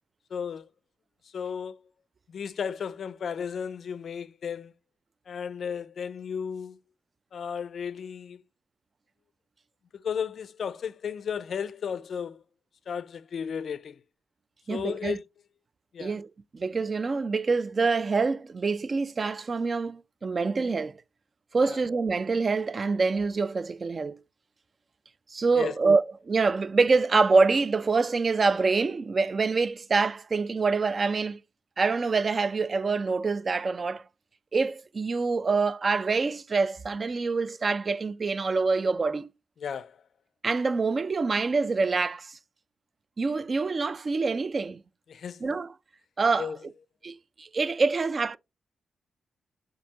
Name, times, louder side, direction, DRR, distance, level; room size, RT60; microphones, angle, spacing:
voice 1, 0.3-0.7 1.3-1.9 2.3-4.7 5.3-6.8 7.3-8.4 9.9-12.4 12.9-14.0 14.7-15.2 15.9-16.2 21.6-21.8 25.5-25.7 39.6-40.0 45.1-45.4 46.4-46.6, left 7 dB, 65° left, 0.3 m, -34 dB
voice 2, 14.7-15.2 16.0-16.3 16.5-21.0 21.5-24.2 25.3-31.4 31.8-34.1 34.5-39.3 40.4-42.4 43.2-44.8 45.4-45.7 46.2-46.5 47.0-48.4, right 4 dB, 45° right, 0.3 m, -26 dB
7.0 x 2.6 x 2.8 m
supercardioid pair, 45°, 0 cm